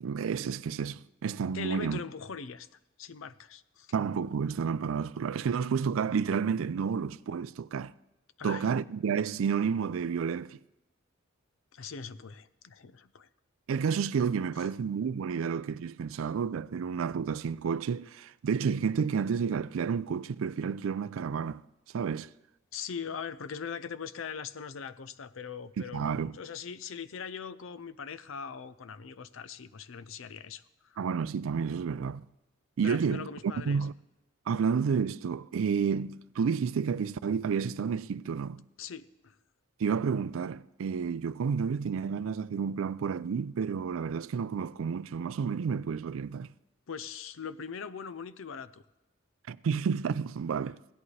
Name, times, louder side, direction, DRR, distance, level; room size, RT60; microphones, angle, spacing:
voice 1, 0.0-2.0 3.9-7.9 8.4-10.6 13.7-21.6 21.9-22.3 25.8-26.4 31.0-32.2 32.8-33.3 33.7-33.9 34.5-38.6 39.8-46.5 49.5-50.8, right 6 dB, 75° right, 0.4 m, -30 dB
voice 2, 1.5-2.7 3.0-3.9 8.4-8.7 11.7-13.3 14.6-14.7 22.7-31.0 32.8-33.9 38.8-39.4 46.9-48.8, left 6 dB, 70° left, 0.5 m, -41 dB
16.5 x 11.0 x 3.3 m
head